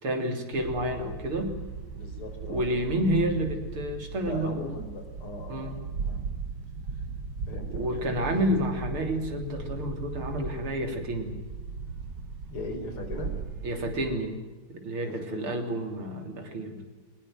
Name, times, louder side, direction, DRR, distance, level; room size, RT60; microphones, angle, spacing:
voice 1, 0.0-1.5 2.4-4.6 5.5-5.8 7.7-11.4 13.6-14.3 14.7-16.9, right 1 dB, 85° right, 5 dB, 4.2 m, -29 dB
sound 1, 0.5-14.2, right 5 dB, 55° right, 2.0 m, -37 dB
voice 2, 1.9-3.0 4.3-5.7 6.0-6.2 7.5-8.3 12.5-13.3 15.0-15.5, left 2 dB, 90° left, 5 dB, 5.5 m, -39 dB
23.0 x 20.5 x 9.4 m, 1.2 s
omnidirectional pair, 2.3 m